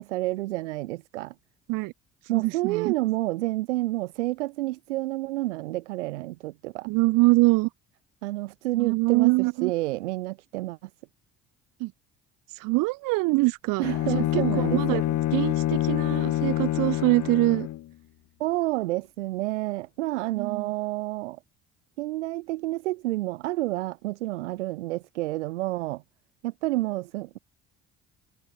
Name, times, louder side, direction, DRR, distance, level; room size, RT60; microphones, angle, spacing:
voice 1, 0.0-1.3 2.3-6.9 8.2-10.8 13.8-15.0 18.4-21.4 22.0-26.0 26.4-27.4, right 18 dB, 80° right, 1.6 m, -29 dB
voice 2, 2.3-2.9 6.8-7.7 8.8-9.7 11.8-11.9 12.5-13.9 14.1-17.7 20.4-20.7, right 25 dB, 65° right, 1.0 m, -24 dB
Bowed string instrument, 13.8-17.9, left 14 dB, 55° left, 1.7 m, -26 dB
hypercardioid pair, 55°, 35 cm